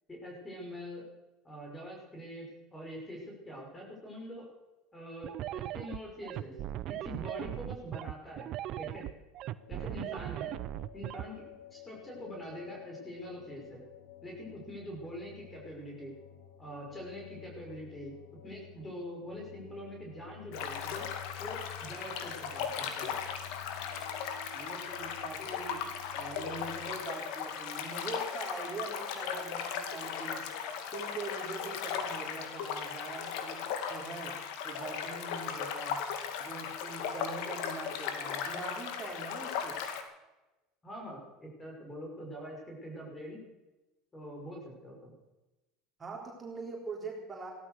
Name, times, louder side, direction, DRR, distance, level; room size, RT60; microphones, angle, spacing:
voice 1, 0.1-1.0 1.4-2.5 2.7-4.5 4.9-6.6 6.9-8.5 8.8-9.1 9.7-10.5 10.9-11.4 11.7-13.8 14.2-16.1 16.6-18.1 18.4-21.1 21.4-23.1 40.8-43.4 44.1-45.1, equal, 20° left, 0 dB, 5.8 m, -44 dB
sound 1, 5.2-11.2, right 13 dB, 55° right, 0.7 m, -38 dB
sound 2, 9.6-26.9, left 11 dB, 90° left, 2.0 m, -52 dB
sound 3, 20.5-40.0, left 7 dB, 70° left, 2.3 m, -37 dB
voice 2, 24.5-30.5 30.8-36.1 36.4-39.8 46.0-47.5, right 3 dB, 25° right, -1 dB, 3.8 m, -43 dB
17.0 x 12.5 x 6.6 m, 1.0 s
supercardioid pair, 95°, 0 cm